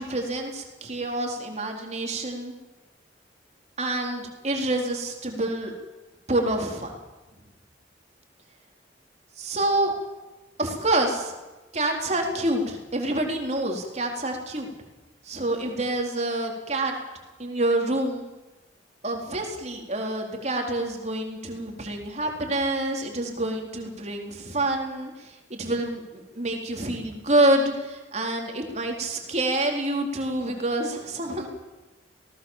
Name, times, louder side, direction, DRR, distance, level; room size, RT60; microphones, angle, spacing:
voice 1, 0.0-2.5 3.8-5.7 6.3-6.9 9.4-9.9 10.6-11.3 11.7-14.7 15.2-16.9 17.4-18.2 19.0-31.5, right 1 dB, 35° right, 2 dB, 4.0 m, -27 dB
27.0 x 18.5 x 7.4 m, 1.1 s
head